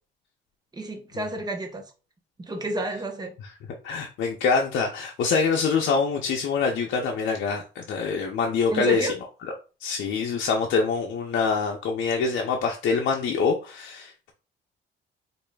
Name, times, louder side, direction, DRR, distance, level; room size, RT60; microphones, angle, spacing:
voice 1, 0.7-1.8 2.4-3.3 8.7-9.2, right 1 dB, 20° right, 0.8 m, -30 dB
voice 2, 3.8-9.1 9.8-14.3, left 5 dB, 70° left, 0.6 m, -25 dB
4.8 x 2.6 x 2.2 m
cardioid pair, 90°, 20 cm